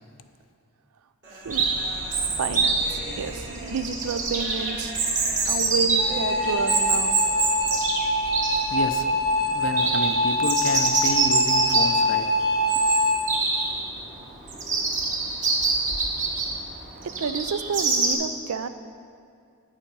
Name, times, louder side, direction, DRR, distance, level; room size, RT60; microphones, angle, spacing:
Human voice, 1.2-7.6, right 1 dB, 50° right, 2.0 m, -41 dB
Chirp tweet, 1.5-18.1, right 3 dB, 35° right, 1.1 m, -26 dB
voice 1, 2.4-4.9 5.4-7.2 17.0-18.7, right 5 dB, 75° right, 12 dB, 0.4 m, -30 dB
sound 1, 6.0-13.2, left 1 dB, 15° left, 0.7 m, -24 dB
voice 2, 8.7-9.1 9.5-12.3, left 3 dB, 55° left, 8 dB, 0.5 m, -30 dB
9.1 x 7.2 x 5.3 m, 2.2 s
head